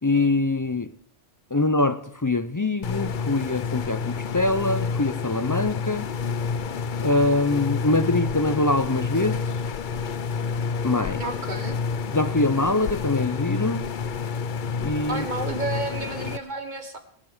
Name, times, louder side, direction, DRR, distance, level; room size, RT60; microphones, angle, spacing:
voice 1, 0.0-0.9 1.5-6.1 7.0-9.5 10.8-11.2 12.1-13.8 14.8-15.3, left 2 dB, 30° left, 0.3 m, -24 dB
sound 1, 2.8-16.4, left 5 dB, 50° left, 0.7 m, -29 dB
voice 2, 11.2-11.8 15.1-17.0, right 3 dB, 40° right, 1.4 m, -31 dB
20.0 x 9.0 x 5.0 m
omnidirectional pair, 1.2 m